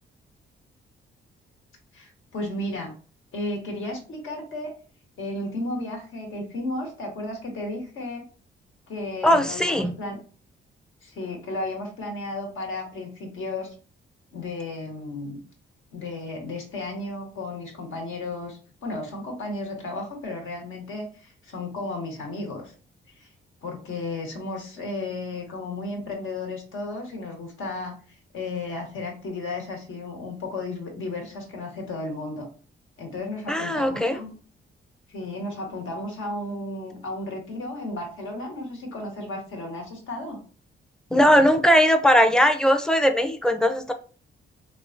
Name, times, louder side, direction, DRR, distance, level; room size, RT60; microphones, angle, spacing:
voice 1, 1.9-2.9 3.3-4.7 5.2-8.2 8.9-10.2 11.0-13.7 14.3-15.4 15.9-22.7 23.2-23.3 23.6-32.5 33.0-34.3 35.1-40.4, left 2 dB, 75° left, 1 dB, 1.3 m, -34 dB
voice 2, 9.2-9.9 33.5-34.2 41.1-43.9, equal, 5° left, 7 dB, 0.5 m, -19 dB
3.5 x 2.3 x 2.5 m, 0.38 s
cardioid pair, 80°, 21 cm